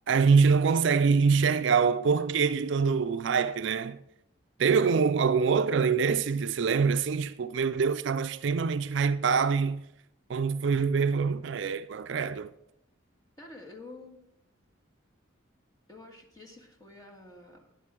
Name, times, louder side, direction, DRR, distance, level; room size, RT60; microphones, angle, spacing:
voice 1, 0.1-4.0 4.6-9.8 10.3-12.5, right 5 dB, 60° right, 0.4 m, -25 dB
voice 2, 13.4-14.2 15.9-17.7, left 2 dB, 20° left, 1.9 m, -48 dB
12.5 x 10.5 x 3.7 m
head